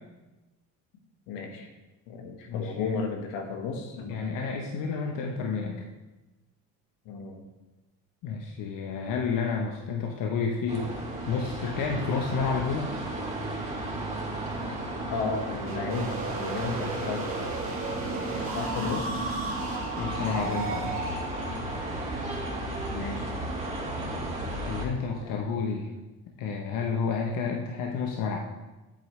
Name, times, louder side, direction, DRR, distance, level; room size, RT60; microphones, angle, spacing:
voice 1, 1.3-1.7 2.1-4.2 7.0-7.4 15.1-17.2 18.4-19.2 22.9-23.3 25.2-25.4, left 4 dB, 80° left, 3 dB, 1.5 m, -34 dB
voice 2, 2.5-3.0 4.1-5.9 8.2-11.0 11.3-12.9 20.0-20.9 24.7-25.9 26.4-28.5, left 5 dB, 60° left, 1 dB, 1.0 m, -30 dB
sound 1, 10.7-24.8, right 1 dB, 20° right, 2.2 m, -34 dB
sound 2, 15.7-23.4, right 3 dB, 35° right, 2.4 m, -35 dB
8.7 x 7.7 x 3.2 m, 1.1 s
supercardioid pair, 95°, 37 cm